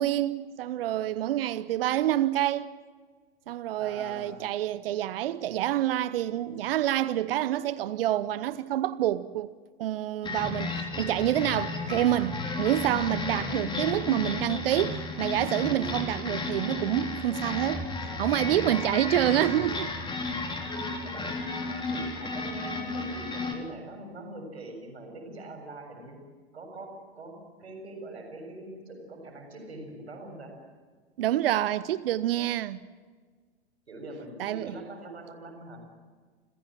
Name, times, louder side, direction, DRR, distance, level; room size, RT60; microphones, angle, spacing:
voice 1, 0.0-2.7 3.5-9.5 9.8-19.9 31.2-32.8 34.4-34.8, right 13 dB, 65° right, 0.9 m, -27 dB
voice 2, 3.8-4.3 13.2-13.6 20.4-20.5 21.0-21.5 21.9-26.2 26.5-27.3 27.6-30.5 33.9-35.8, right 1 dB, 80° right, 7.4 m, -43 dB
sound 1, 10.2-23.5, left 3 dB, 15° left, 3.6 m, -33 dB
29.0 x 16.0 x 7.6 m
hypercardioid pair, 100°, 32 cm